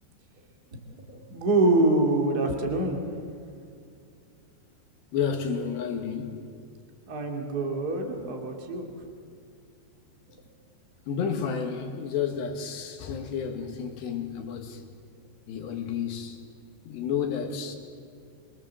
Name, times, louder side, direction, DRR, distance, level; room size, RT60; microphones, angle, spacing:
voice 1, 1.1-3.0 7.1-8.9, right 2 dB, 25° right, 2.4 m, -25 dB
voice 2, 5.1-6.4 11.1-14.8 15.5-16.4 16.9-17.8, left 7 dB, 75° left, 3.7 m, -31 dB
28.0 x 23.5 x 7.6 m
omnidirectional pair, 5.1 m